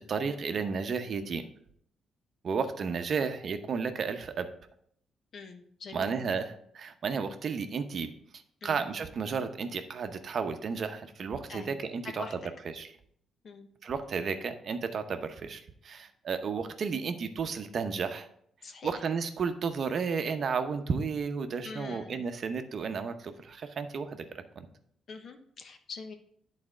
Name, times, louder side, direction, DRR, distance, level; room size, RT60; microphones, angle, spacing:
voice 1, 0.1-1.5 2.4-4.5 5.9-8.1 8.6-12.4 12.7-12.9 13.8-18.3 18.8-24.7, right 5 dB, 55° right, 8 dB, 0.7 m, -33 dB
voice 2, 5.3-6.3 8.6-8.9 11.5-11.7 12.2-12.3 13.4-13.7 18.6-18.9 21.6-22.2 25.1-26.1, left 4 dB, 50° left, 7 dB, 1.0 m, -44 dB
8.7 x 4.2 x 4.8 m, 0.67 s
cardioid pair, 90°, 0 cm